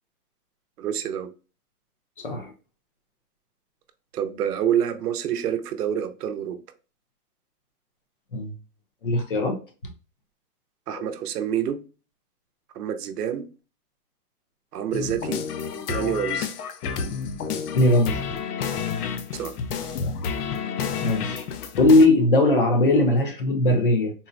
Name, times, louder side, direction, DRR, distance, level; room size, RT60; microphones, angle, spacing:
voice 1, 0.8-1.3 4.1-6.6 10.9-11.8 12.8-13.5 14.7-15.4 15.9-16.5 19.3-19.5, right 9 dB, 85° right, 0.7 m, -27 dB
voice 2, 2.2-2.5 8.3-8.5 9.0-9.6 11.0-11.1 17.7-18.2 21.0-21.5 21.8-24.1, left 2 dB, 40° left, 0.5 m, -19 dB
sound 1, 14.9-22.1, left 6 dB, 85° left, 0.7 m, -30 dB
3.8 x 2.0 x 2.5 m
hypercardioid pair, 175°, 45 cm